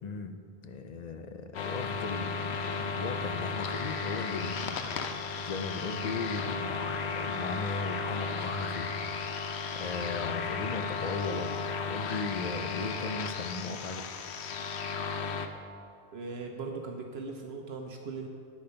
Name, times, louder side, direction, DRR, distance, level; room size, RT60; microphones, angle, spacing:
voice 1, 0.0-8.9 9.7-11.5 11.8-14.1, left 4 dB, 45° left, 7 dB, 0.6 m, -37 dB
sound 1, 1.5-15.5, left 5 dB, 90° left, 1.0 m, -34 dB
sound 2, 5.5-12.8, right 2 dB, 20° right, 2.7 m, -55 dB
voice 2, 16.1-18.3, right 4 dB, 75° right, 2 dB, 1.1 m, -39 dB
9.5 x 8.8 x 5.7 m, 2.4 s
omnidirectional pair, 1.1 m